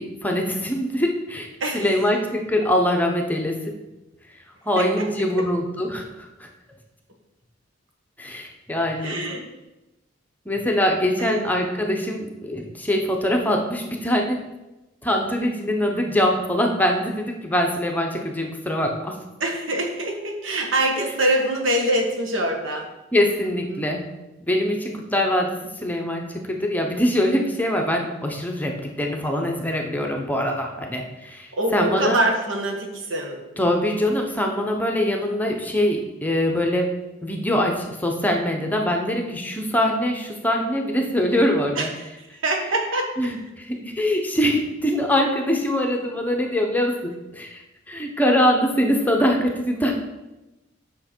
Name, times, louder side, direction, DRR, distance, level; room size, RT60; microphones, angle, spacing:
voice 1, 0.0-1.5 1.7-3.7 4.6-6.5 8.2-9.2 10.5-14.4 15.0-19.2 21.0-21.1 23.1-24.1 24.4-32.2 33.6-36.9 37.2-41.9 43.2-49.9, left 1 dB, 10° left, 2 dB, 0.8 m, -23 dB
voice 2, 1.6-2.0 4.7-5.5 9.0-9.4 11.2-11.5 11.8-12.0 19.4-22.9 23.4-23.8 25.0-25.3 31.5-33.4 41.7-41.9 42.2-43.1, right 1 dB, 80° right, 2 dB, 1.4 m, -25 dB
7.7 x 5.9 x 4.4 m, 1.0 s
head